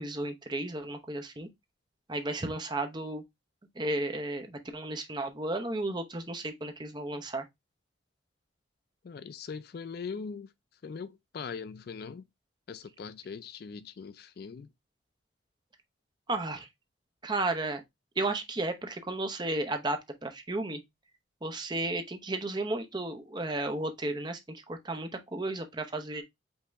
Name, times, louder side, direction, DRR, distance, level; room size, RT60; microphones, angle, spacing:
voice 1, 0.0-1.5 2.1-3.2 3.7-7.4 16.3-16.7 17.2-17.8 18.2-20.8 21.4-26.2, right 2 dB, 20° right, 0.8 m, -33 dB
voice 2, 9.0-10.5 10.8-12.3 12.7-14.7, left 5 dB, 50° left, 0.3 m, -41 dB
5.3 x 2.8 x 3.4 m
head